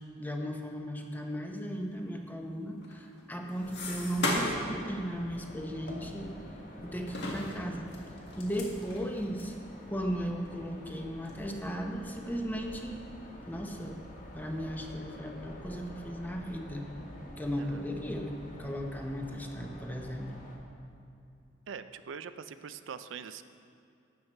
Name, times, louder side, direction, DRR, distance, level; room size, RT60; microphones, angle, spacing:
voice 1, 0.2-6.3 6.8-7.9 8.4-9.5 9.9-13.0 13.5-14.0 14.3-16.9 17.4-20.3, equal, 10° left, 2 dB, 0.8 m, -36 dB
sound 1, 2.8-4.7 5.1-5.3 5.9-6.7 7.1-9.6 10.1-10.2 10.4-10.6 11.2-11.5 11.9-12.6 13.0-13.7, left 2 dB, 65° left, 1.7 m, -37 dB
sound 2, 3.6-20.6, equal, 45° left, 1.5 m, -48 dB
voice 2, 21.7-23.4, right 6 dB, 80° right, 11 dB, 0.4 m, -43 dB
12.0 x 8.0 x 4.4 m, 2.6 s
head